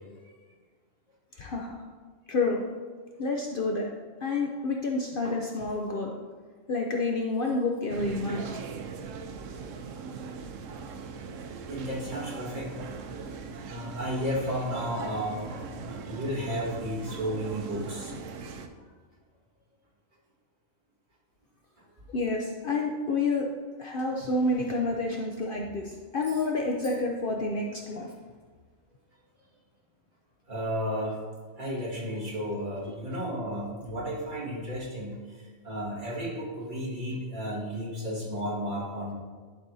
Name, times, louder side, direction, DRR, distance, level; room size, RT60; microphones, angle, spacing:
voice 1, 1.3-1.8 2.3-2.6 3.2-3.9 4.2-6.2 6.7-8.6 22.1-23.5 23.8-28.1, left 3 dB, 55° left, 0 dB, 0.7 m, -29 dB
sound 1, 7.9-18.7, right 5 dB, 80° right, 1.0 m, -40 dB
voice 2, 11.7-12.7 13.7-18.2 30.5-31.2 31.6-39.1, equal, 40° right, -6 dB, 1.9 m, -33 dB
11.5 x 4.6 x 2.7 m, 1.5 s
omnidirectional pair, 1.3 m